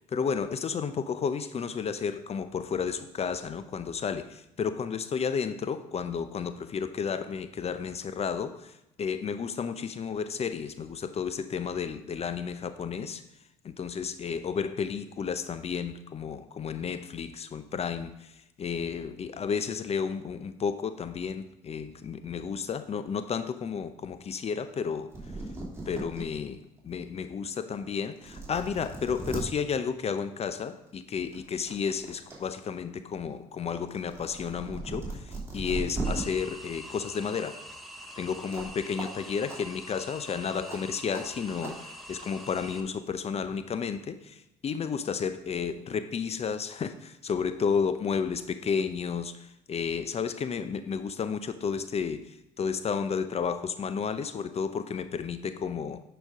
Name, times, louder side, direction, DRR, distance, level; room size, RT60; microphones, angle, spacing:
voice 1, 0.1-13.2 13.6-18.3 18.6-25.1 25.9-37.6 38.2-56.0, left 6 dB, 40° left, 11 dB, 0.6 m, -32 dB
Index Card Flip Manipulation, 24.9-25.0 25.1-26.2 26.8-26.9 27.7-27.8 28.2-29.4 30.7-30.9 31.3-32.4 32.7-36.2 38.5-38.7 39.0-39.1 39.4-39.6 40.7-40.8 41.1-41.2 41.6-41.7, right 3 dB, 15° right, 2.9 m, -37 dB
sound 1, 36.0-42.8, equal, ahead, 1.1 m, -45 dB
9.9 x 5.1 x 3.6 m, 0.87 s
hypercardioid pair, 60°, 17 cm